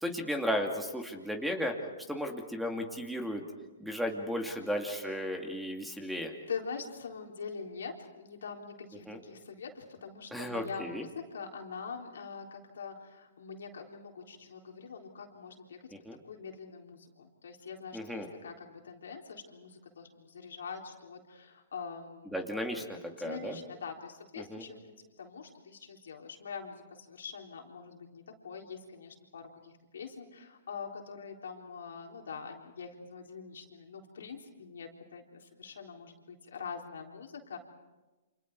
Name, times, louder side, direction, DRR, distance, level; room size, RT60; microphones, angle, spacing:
voice 1, 0.0-1.7 2.1-3.4 3.8-6.3 9.1-9.2 10.3-11.0 16.1-16.2 17.9-18.3 22.3-22.8 23.2-23.6 24.5-24.6, equal, ahead, 3 dB, 2.5 m, -34 dB
voice 2, 6.5-15.9 16.2-22.4 22.7-22.8 23.1-37.6, left 5 dB, 80° left, 1 dB, 3.8 m, -44 dB
29.0 x 27.0 x 4.7 m, 1.1 s
hypercardioid pair, 130°, 0 cm